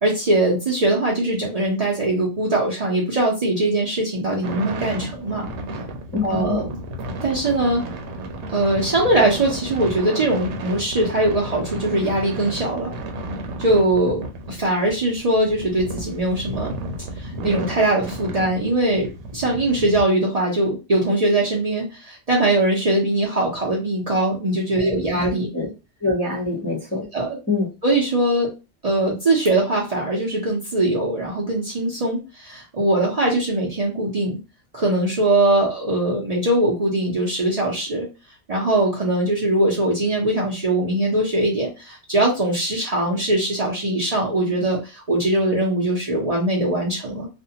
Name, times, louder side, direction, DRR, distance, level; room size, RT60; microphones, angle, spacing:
voice 1, 0.0-5.5 6.2-6.8 7.2-7.8 8.5-12.9 13.6-16.7 17.2-25.5 27.1-27.4 27.8-28.5 28.8-34.4 34.7-38.1 38.5-47.3, right 1 dB, 40° right, -4 dB, 0.7 m, -21 dB
sound 1, 4.4-20.0, right 1 dB, 90° right, 0.9 m, -33 dB
voice 2, 6.1-6.6 24.7-25.2 25.5-25.7 26.0-27.0 27.5-27.7, left 3 dB, 15° left, -5 dB, 0.7 m, -25 dB
2.5 x 2.2 x 2.7 m, 0.28 s
omnidirectional pair, 1.2 m